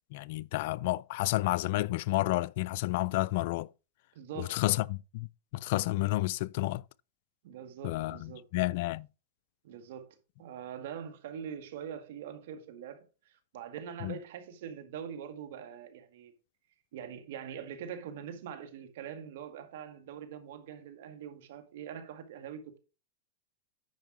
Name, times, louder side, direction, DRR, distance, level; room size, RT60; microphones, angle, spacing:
voice 1, 0.1-3.7 4.4-6.8 7.8-9.1 14.0-14.2, left 19 dB, 60° left, 0.3 m, -31 dB
voice 2, 4.1-4.6 7.4-8.4 9.6-16.3 16.9-22.8, right 8 dB, 70° right, 1.9 m, -43 dB
9.4 x 5.5 x 4.9 m
hypercardioid pair, 120°, 0 cm